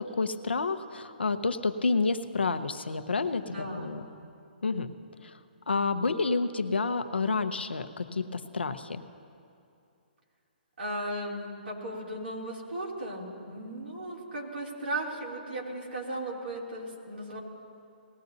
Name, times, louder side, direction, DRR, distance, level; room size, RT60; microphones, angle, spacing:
voice 1, 0.0-4.1 4.6-4.9 5.2-5.4 5.7-9.0, left 4 dB, 90° left, 9 dB, 0.7 m, -29 dB
voice 2, 3.4-3.9 10.8-17.4, right 1 dB, 85° right, -4 dB, 3.0 m, -36 dB
19.5 x 14.5 x 2.7 m, 2.5 s
hypercardioid pair, 140°, 6 cm